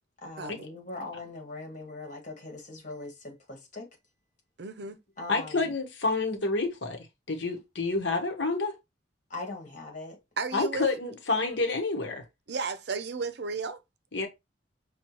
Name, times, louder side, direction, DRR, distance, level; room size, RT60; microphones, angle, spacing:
voice 1, 0.2-3.9 5.2-5.7 9.3-10.2, left 2 dB, 40° left, 1.7 m, -41 dB
voice 2, 4.6-5.0 10.4-10.9 12.5-13.8, right 4 dB, 60° right, 0.5 m, -33 dB
voice 3, 5.3-8.7 10.5-12.2 14.1-14.3, left 3 dB, 70° left, 1.0 m, -29 dB
6.0 x 2.3 x 3.0 m
head